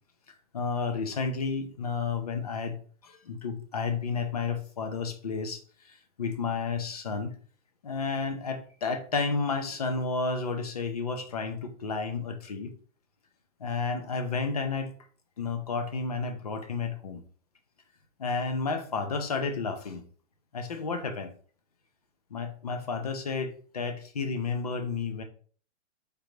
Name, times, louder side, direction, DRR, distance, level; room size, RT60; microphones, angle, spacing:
voice 1, 0.3-2.8 3.0-7.3 7.8-12.7 13.6-14.9 15.4-17.2 18.2-20.0 20.5-21.3 22.3-25.2, left 4 dB, 30° left, 8 dB, 0.5 m, -31 dB
5.2 x 3.3 x 3.1 m, 0.43 s
hypercardioid pair, 175°, 37 cm